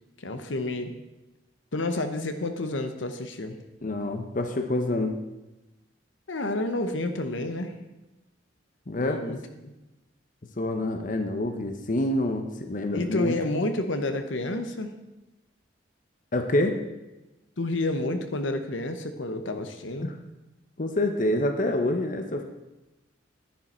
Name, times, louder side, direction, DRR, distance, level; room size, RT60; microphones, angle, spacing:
voice 1, 0.2-0.9 1.7-3.6 6.3-7.8 9.0-9.7 12.9-14.9 17.6-20.1, left 2 dB, 75° left, 8 dB, 1.0 m, -30 dB
voice 2, 3.8-5.2 8.9-9.4 10.6-13.4 16.3-16.8 20.0-20.1 20.8-22.4, left 1 dB, 45° left, 6 dB, 0.8 m, -27 dB
11.0 x 10.5 x 4.4 m, 1.0 s
head